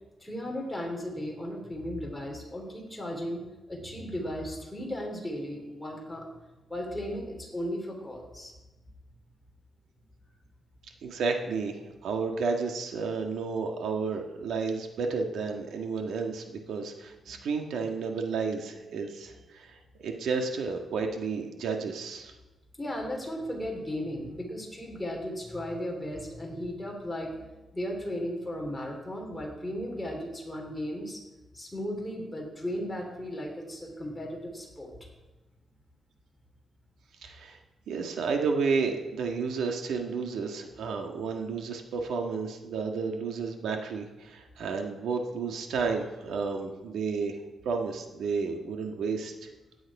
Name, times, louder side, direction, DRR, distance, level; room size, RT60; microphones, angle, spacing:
voice 1, 0.2-3.4 3.7-6.3 6.7-8.5 17.2-17.3 22.8-31.2 31.5-35.1, equal, 5° left, -1 dB, 3.2 m, -36 dB
voice 2, 11.0-11.8 12.0-22.3 37.2-37.6 37.9-49.5, right 4 dB, 85° right, 3 dB, 1.5 m, -31 dB
16.0 x 9.6 x 4.8 m, 1.1 s
wide cardioid pair, 140°, 0 cm